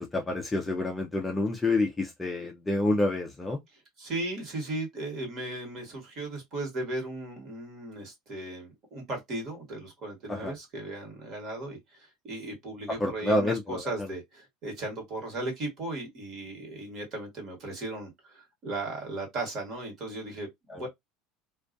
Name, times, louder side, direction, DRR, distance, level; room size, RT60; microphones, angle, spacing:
voice 1, 0.0-3.6 10.3-10.5 13.0-13.8 20.7-20.8, left 2 dB, 10° left, 0.4 m, -28 dB
voice 2, 3.7-20.5 20.7-20.9, right 2 dB, 35° right, 1.3 m, -36 dB
2.3 x 2.2 x 2.4 m
cardioid pair, 160°, 0 cm